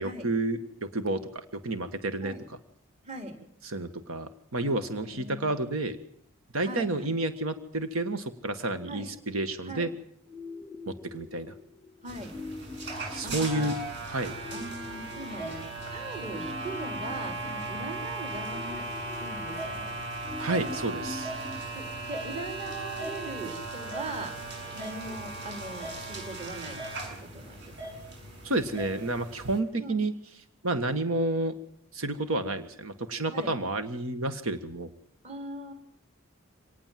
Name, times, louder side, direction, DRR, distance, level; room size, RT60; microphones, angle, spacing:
voice 1, 0.0-2.3 3.6-6.0 6.5-9.9 11.1-11.5 13.1-13.8 14.1-14.3 20.4-21.3 28.4-30.1 30.6-31.6 31.9-34.9, right 2 dB, 85° right, 9 dB, 1.6 m, -30 dB
voice 2, 3.0-3.4 5.1-5.5 6.6-7.1 8.9-9.1 9.6-9.9 12.0-12.3 13.2-13.6 14.5-15.6 15.9-19.9 21.7-24.5 24.7-26.8 27.1-27.7 29.8-30.0 33.3-33.8 35.2-35.7, right 2 dB, 30° right, 5 dB, 4.4 m, -40 dB
sound 1, 10.2-26.2, left 3 dB, 15° right, 3.1 m, -45 dB
sound 2, 12.1-29.6, right 2 dB, 55° right, 7.2 m, -37 dB
26.0 x 19.0 x 7.6 m, 0.69 s
head